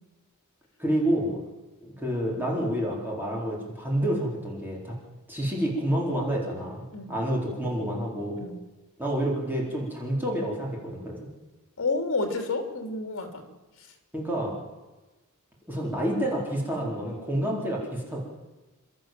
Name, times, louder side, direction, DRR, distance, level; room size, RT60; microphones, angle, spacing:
voice 1, 0.8-1.4 1.8-4.9 5.3-8.4 9.0-11.2 14.1-14.6 15.7-18.2, right 1 dB, 10° right, -3 dB, 4.3 m, -28 dB
voice 2, 11.8-13.5, left 3 dB, 65° left, 5 dB, 3.3 m, -30 dB
29.0 x 13.0 x 7.6 m, 1.2 s
head